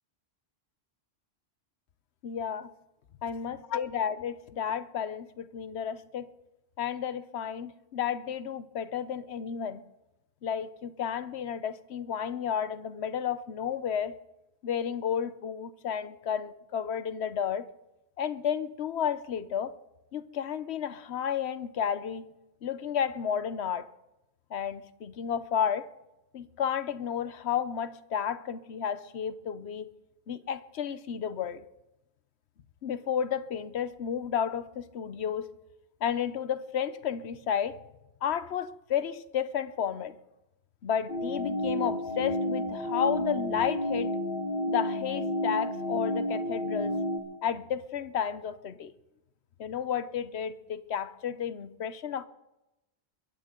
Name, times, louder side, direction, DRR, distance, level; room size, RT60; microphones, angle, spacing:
voice 1, 2.2-2.7 3.2-6.3 6.8-9.8 10.4-14.1 14.6-17.6 18.2-19.7 20.1-22.3 22.6-23.9 24.5-25.9 26.3-29.9 30.3-31.6 32.8-35.5 36.0-37.8 38.2-40.2 40.8-44.1 44.7-46.9 47.4-48.9 49.6-52.2, left 8 dB, 80° left, 1.1 m, -32 dB
sound 1, 41.1-47.2, left 1 dB, 60° left, 3.7 m, -31 dB
22.5 x 15.0 x 3.8 m
omnidirectional pair, 1.1 m